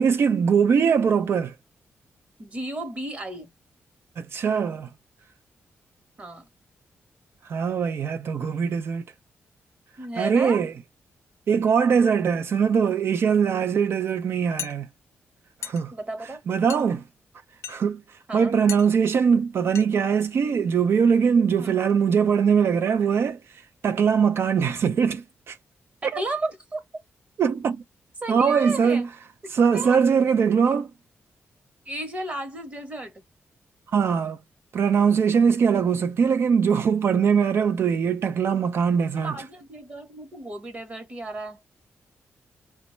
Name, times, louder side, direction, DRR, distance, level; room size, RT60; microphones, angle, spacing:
voice 1, 0.0-1.5 4.2-4.9 7.4-9.1 10.2-10.7 11.5-14.9 15.6-15.9 16.5-17.0 17.7-18.0 18.3-25.6 26.1-26.2 27.4-27.8 28.3-29.1 29.5-30.9 33.9-34.4 34.7-39.4, right 6 dB, 55° right, 0.4 m, -21 dB
voice 2, 2.4-3.5 6.2-6.5 10.0-10.6 15.9-16.4 18.3-18.6 21.6-21.8 26.0-26.8 28.2-29.1 29.4-30.0 31.9-33.1 39.2-41.6, right 2 dB, 30° right, 1.0 m, -33 dB
sound 1, 14.6-14.8 15.6-15.8 16.7-16.9 17.6-17.8 18.7-18.9 19.7-19.8 20.2-20.3 20.6-20.8, left 9 dB, 70° left, 0.4 m, -35 dB
2.9 x 2.2 x 4.2 m
wide cardioid pair, 140°, 5 cm